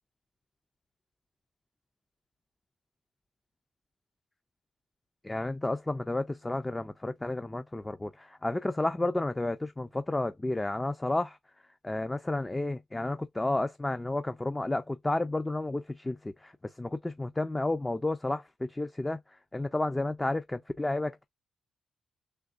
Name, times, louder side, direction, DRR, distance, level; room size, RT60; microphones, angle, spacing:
voice 1, 5.2-11.4 11.8-19.2 19.5-21.2, left 2 dB, 15° left, 0.3 m, -31 dB
3.4 x 2.9 x 2.4 m
cardioid pair, 100°, 0 cm